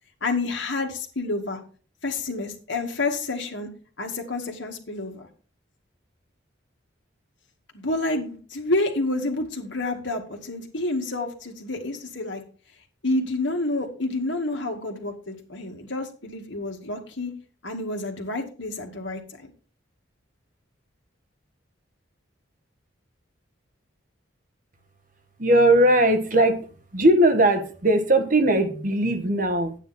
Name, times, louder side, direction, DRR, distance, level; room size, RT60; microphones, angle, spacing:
voice 1, 0.2-1.6 2.0-3.7 4.0-5.3 7.7-12.4 13.0-17.3 17.6-19.5, left 2 dB, 65° left, 3 dB, 2.2 m, -29 dB
voice 2, 25.4-26.7 26.9-29.7, right 1 dB, 40° right, 7 dB, 1.4 m, -19 dB
10.0 x 9.1 x 4.3 m, 0.40 s
head